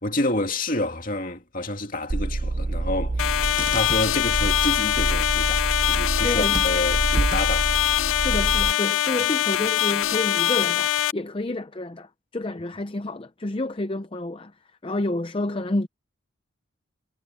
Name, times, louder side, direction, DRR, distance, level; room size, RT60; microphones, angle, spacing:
voice 1, 0.0-3.4 3.7-7.7, left 1 dB, 40° left, 2.6 m, -28 dB
Car / Engine, 2.1-8.7, right 2 dB, 25° right, 0.3 m, -27 dB
sound 1, 3.2-11.1, left 12 dB, 80° left, 0.4 m, -23 dB
voice 2, 6.2-6.6 8.2-14.5 14.8-15.9, left 2 dB, 25° left, 0.6 m, -29 dB
head